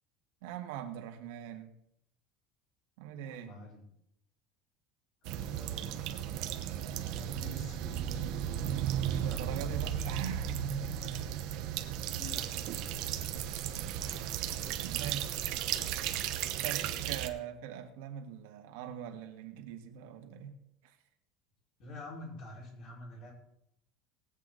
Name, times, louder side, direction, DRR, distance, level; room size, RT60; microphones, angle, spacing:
voice 1, 0.4-1.8 3.0-3.5 5.5-5.7 9.1-11.4 14.7-15.3 16.6-20.9, right 9 dB, 85° right, 1.7 m, -42 dB
voice 2, 3.1-3.8 5.2-8.0 9.1-9.7 12.1-13.5 14.8-16.2 21.8-23.3, left 1 dB, 40° left, 4.7 m, -49 dB
sound 1, 5.3-17.3, right 10 dB, 50° right, 0.9 m, -35 dB
19.5 x 8.2 x 4.0 m
cardioid pair, 175°, 0 cm